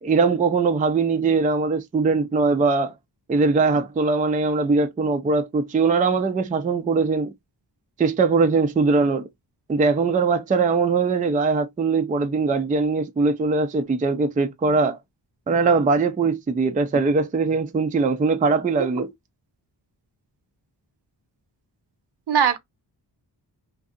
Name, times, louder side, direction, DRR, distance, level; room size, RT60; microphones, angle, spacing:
voice 1, 0.0-2.9 3.3-7.3 8.0-9.2 9.7-15.0 15.5-19.1, right 4 dB, 20° right, 0.3 m, -21 dB
voice 2, 18.8-19.1 22.3-22.6, right 8 dB, 65° right, 0.7 m, -21 dB
2.4 x 2.3 x 2.6 m
wide cardioid pair, 100°, 44 cm